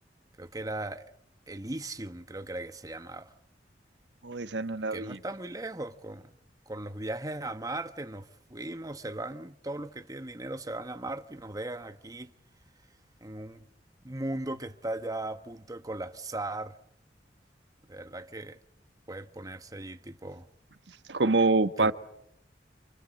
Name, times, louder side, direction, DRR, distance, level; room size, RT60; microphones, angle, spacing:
voice 1, 0.4-1.1 1.5-3.3 4.7-6.4 6.7-12.3 13.2-13.6 14.0-16.8 17.9-18.6 19.1-20.5 21.8-21.9, right 2 dB, 20° right, 1.1 m, -38 dB
voice 2, 4.2-5.2 21.1-21.9, right 3 dB, 85° right, 1.3 m, -25 dB
29.0 x 26.5 x 7.7 m
head